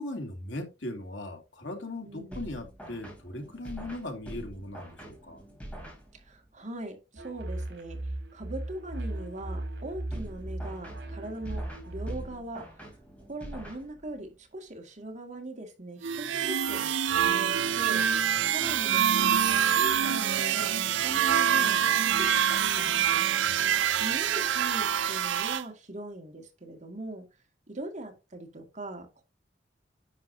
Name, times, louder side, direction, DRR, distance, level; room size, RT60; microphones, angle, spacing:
voice 1, 0.0-5.4 23.4-24.0, left 1 dB, 80° left, 2.7 m, -39 dB
voice 2, 2.0-2.4 6.1-13.0 13.3-16.9 17.1-18.0 18.5-19.3 19.7-23.3 24.0-27.2 27.7-29.2, right 1 dB, 40° right, 2.2 m, -41 dB
sound 1, 2.3-6.5 10.1-14.3, right 1 dB, 5° left, 3.6 m, -45 dB
sound 2, 7.2-12.4, right 1 dB, 70° right, 4.1 m, -37 dB
sound 3, 16.0-25.6, right 9 dB, 90° right, 0.5 m, -25 dB
10.5 x 6.9 x 2.8 m
head